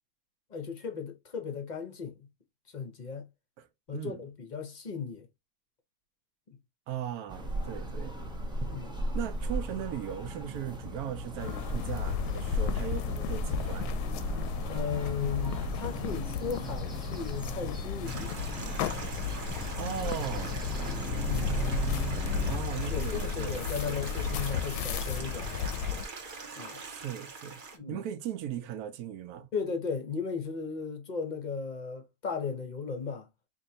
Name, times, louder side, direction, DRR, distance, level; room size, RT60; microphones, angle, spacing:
voice 1, 0.5-2.3 2.7-3.3 3.9-5.3 6.5-6.6 8.7-9.0 14.7-18.3 21.3-21.6 22.9-25.7 26.6-26.8 27.7-28.0 29.5-33.3, left 6 dB, 40° left, 0.7 m, -36 dB
voice 2, 6.9-8.1 9.1-13.9 19.8-20.6 22.5-24.0 26.8-27.6 27.9-29.5, right 9 dB, 75° right, 1.1 m, -38 dB
sound 1, 7.3-22.6, right 1 dB, 5° right, 0.5 m, -37 dB
sound 2, 11.4-26.1, left 6 dB, 90° left, 1.1 m, -33 dB
Stream, 18.0-27.8, right 4 dB, 45° right, 0.7 m, -43 dB
4.4 x 2.8 x 2.7 m
omnidirectional pair, 1.6 m